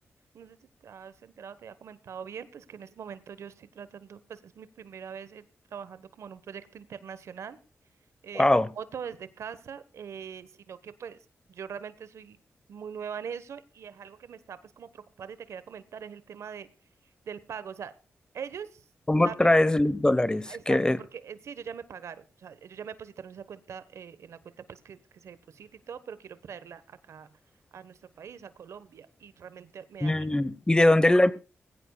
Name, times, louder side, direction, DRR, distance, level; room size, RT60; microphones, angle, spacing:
voice 1, 0.3-5.4 5.7-7.6 8.2-8.5 8.7-11.2 11.5-12.4 12.7-16.7 17.3-17.9 18.3-18.8 19.2-19.5 20.5-27.4 27.7-30.3 30.7-30.9, right 7 dB, 80° right, 1.2 m, -42 dB
voice 2, 8.3-8.7 19.1-21.0 30.0-31.3, left 1 dB, 15° left, 1.1 m, -22 dB
20.0 x 16.0 x 2.3 m
cardioid pair, 75°, 5 cm